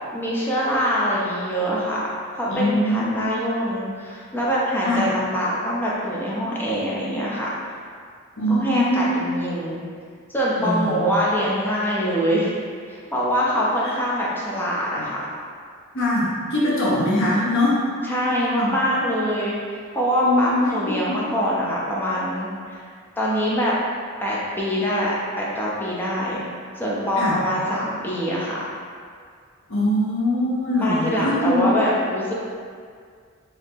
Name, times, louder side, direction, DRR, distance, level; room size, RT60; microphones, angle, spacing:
voice 1, 0.1-2.0 2.3-7.8 8.5-9.8 10.3-12.5 12.8-15.2 18.0-22.9 23.2-23.7 24.2-26.4 26.8-28.7 30.8-32.3, equal, 10° left, -6 dB, 0.6 m, -24 dB
voice 2, 2.5-3.0 4.8-5.0 8.4-9.1 10.6-11.0 15.9-17.8 18.6-18.7 20.2-20.6 20.8-21.2 27.2-27.4 29.7-31.6, left 1 dB, 65° left, -6 dB, 0.9 m, -22 dB
2.8 x 2.7 x 3.5 m, 2.1 s
head